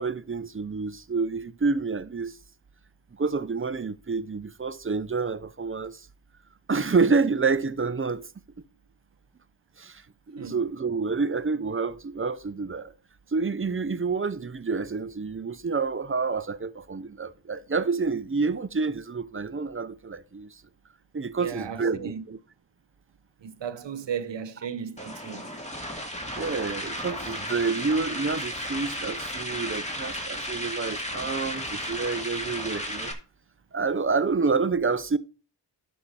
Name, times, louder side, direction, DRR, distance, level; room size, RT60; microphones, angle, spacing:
voice 1, 0.0-2.3 3.2-6.0 6.7-8.3 9.8-10.0 10.3-12.9 13.3-20.5 21.1-22.4 26.4-33.1 33.7-35.2, right 4 dB, 30° right, 0.7 m, -28 dB
voice 2, 21.4-22.2 23.4-25.5, right 7 dB, 75° right, 0.9 m, -35 dB
sound 1, 25.0-33.1, equal, 15° left, 2.3 m, -34 dB
11.5 x 5.5 x 4.3 m
cardioid pair, 50°, 44 cm